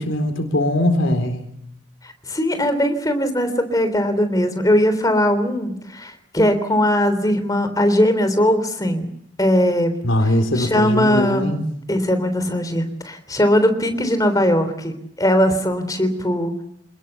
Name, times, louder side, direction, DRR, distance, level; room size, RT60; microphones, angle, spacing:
voice 1, 0.0-1.5 10.0-11.6, left 1 dB, 80° left, 7 dB, 4.0 m, -20 dB
voice 2, 2.3-9.1 9.4-9.9 10.6-11.5 11.9-16.6, equal, 20° left, 9 dB, 3.5 m, -19 dB
27.5 x 20.5 x 7.1 m, 0.74 s
head